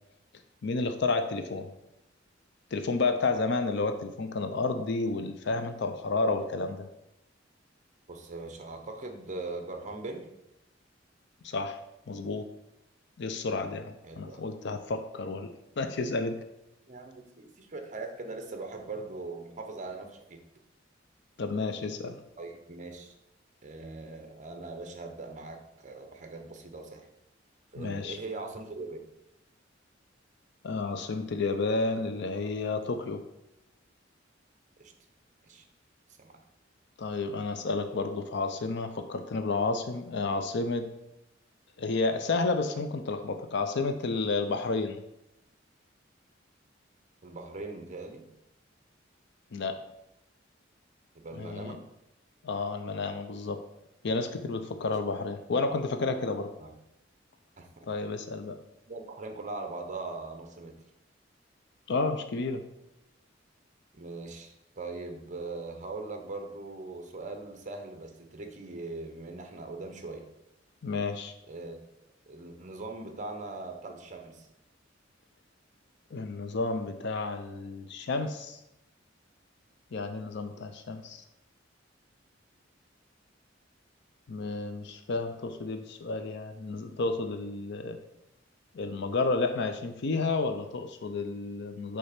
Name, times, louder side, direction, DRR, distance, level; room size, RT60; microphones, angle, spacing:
voice 1, 0.6-1.7 2.7-6.9 11.4-11.8 12.1-12.5 13.2-15.5 15.8-16.4 21.4-22.2 27.8-28.2 30.6-33.2 37.0-40.9 41.8-45.0 49.5-49.8 51.4-51.8 52.4-53.6 54.0-56.5 57.9-58.6 61.9-62.6 70.8-71.3 76.1-78.6 79.9-81.2 84.3-88.0 88.7-92.0, left 3 dB, 65° left, 7 dB, 0.5 m, -31 dB
voice 2, 8.1-10.3 14.0-14.4 16.9-20.4 22.4-23.1 23.6-27.1 27.7-29.0 34.8-34.9 35.5-35.6 36.2-36.4 47.2-48.3 51.1-51.8 56.6-56.7 57.6-57.8 58.9-60.7 63.9-70.3 71.5-71.8 72.3-74.5, right 3 dB, 40° right, 5 dB, 0.9 m, -40 dB
6.4 x 3.4 x 5.8 m, 0.87 s
head